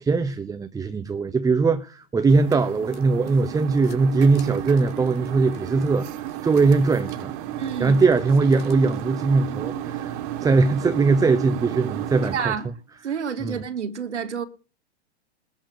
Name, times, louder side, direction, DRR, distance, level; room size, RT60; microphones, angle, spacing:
voice 1, 0.0-7.3 7.8-12.5 13.4-13.6, right 4 dB, 10° right, 0.8 m, -21 dB
sound 1, 2.0-9.2, left 8 dB, 65° left, 4.2 m, -51 dB
sound 2, 2.3-12.5, right 11 dB, 45° right, 2.1 m, -33 dB
voice 2, 7.6-8.0 12.3-12.7 13.0-14.4, right 7 dB, 90° right, 2.6 m, -28 dB
21.0 x 7.3 x 6.8 m
hypercardioid pair, 120°, 34 cm